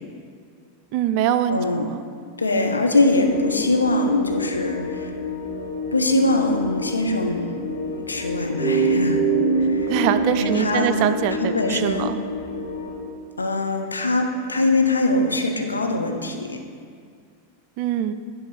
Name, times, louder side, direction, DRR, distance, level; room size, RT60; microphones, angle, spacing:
voice 1, 0.9-2.0 9.9-12.2 17.8-18.1, right 10 dB, 45° right, 11 dB, 0.4 m, -23 dB
voice 2, 1.5-1.9 2.4-5.1 5.9-7.8 8.1-9.2 9.6-9.9 10.3-10.9 11.4-12.1 13.4-16.6, left 2 dB, 80° left, 3 dB, 0.7 m, -22 dB
sound 1, 3.0-13.0, left 3 dB, 60° left, 1.4 m, -31 dB
sound 2, 8.6-12.2, right 4 dB, ahead, 1.5 m, -23 dB
10.5 x 3.9 x 6.0 m, 2.2 s
figure-of-eight pair, 90°, 0 cm